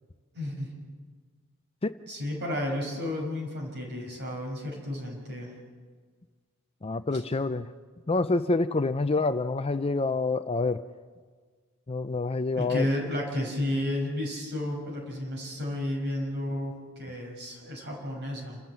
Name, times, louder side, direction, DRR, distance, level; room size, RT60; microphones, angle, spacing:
voice 1, 0.3-0.7 2.1-5.5 12.5-18.6, left 1 dB, 50° right, 1 dB, 6.1 m, -32 dB
voice 2, 6.8-7.7 8.1-10.8 11.9-12.9, left 3 dB, 25° left, 11 dB, 0.5 m, -27 dB
28.5 x 14.0 x 7.6 m, 1.5 s
head